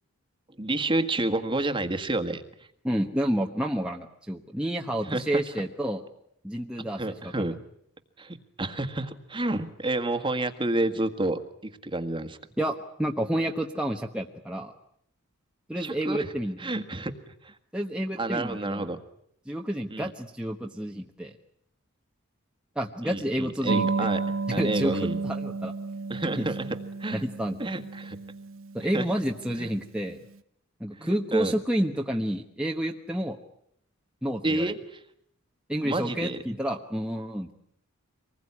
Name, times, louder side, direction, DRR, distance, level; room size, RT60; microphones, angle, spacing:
voice 1, 0.6-2.4 5.0-5.4 7.0-7.6 8.2-12.4 15.8-16.3 16.6-17.1 17.4-17.5 18.2-19.0 19.9-20.1 23.0-24.2 24.5-25.2 26.1-27.2 27.6-28.2 28.9-29.1 29.6-29.7 31.0-31.5 34.4-35.0 35.8-36.4, right 2 dB, 25° right, 8 dB, 1.7 m, -30 dB
voice 2, 2.8-6.0 6.4-7.5 12.6-14.7 15.7-16.6 17.7-18.9 19.5-21.4 22.7-24.1 24.5-25.7 26.4-26.5 27.1-27.6 28.7-30.2 30.8-33.4 34.2-34.7 35.7-37.5, right 1 dB, 5° right, 0 dB, 1.2 m, -29 dB
sound 1, 23.7-29.9, right 3 dB, 70° right, 1.0 m, -32 dB
25.5 x 20.5 x 9.8 m, 0.71 s
head